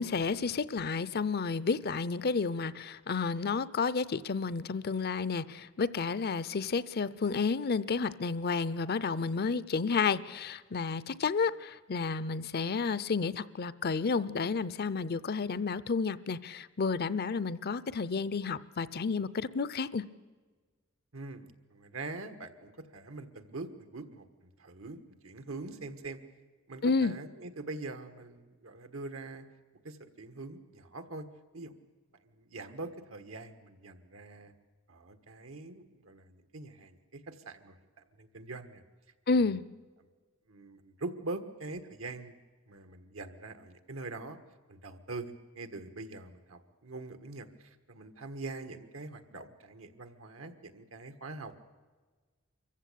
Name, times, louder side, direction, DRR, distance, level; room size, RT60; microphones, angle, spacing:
voice 1, 0.0-20.0 26.8-27.1 39.3-39.6, left 4 dB, 50° left, 17 dB, 0.6 m, -31 dB
voice 2, 21.1-26.2 26.7-29.5 29.8-31.2 31.5-31.7 32.4-34.5 34.9-37.8 38.2-38.8 39.3-39.4 40.5-42.4 42.7-44.4 44.7-51.5, right 3 dB, 85° right, 8 dB, 1.5 m, -43 dB
25.0 x 15.0 x 8.5 m, 1.4 s
head